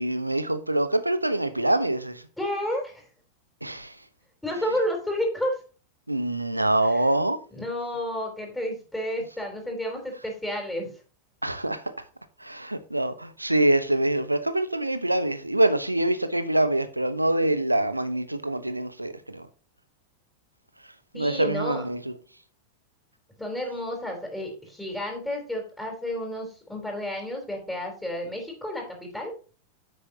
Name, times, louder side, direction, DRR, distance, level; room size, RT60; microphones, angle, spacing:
voice 1, 0.0-2.3 3.6-4.0 6.1-7.4 11.4-11.9 12.4-19.5 21.1-22.1, right 1 dB, 85° right, 1.0 m, -25 dB
voice 2, 2.4-3.0 4.4-5.6 7.5-10.9 21.1-21.8 23.4-29.3, left 1 dB, 5° left, 3.9 m, -31 dB
10.0 x 8.2 x 2.9 m
figure-of-eight pair, 90°, 0 cm